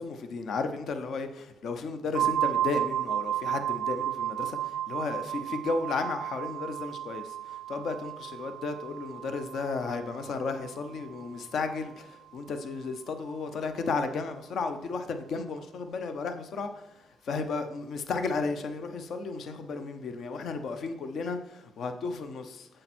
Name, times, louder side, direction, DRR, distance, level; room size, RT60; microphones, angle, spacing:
voice 1, 0.0-22.7, left 4 dB, 60° left, 0.7 m, -34 dB
sound 1, 2.1-11.8, right 12 dB, 75° right, 0.3 m, -33 dB
8.8 x 7.7 x 4.3 m
cardioid pair, 135°, 0 cm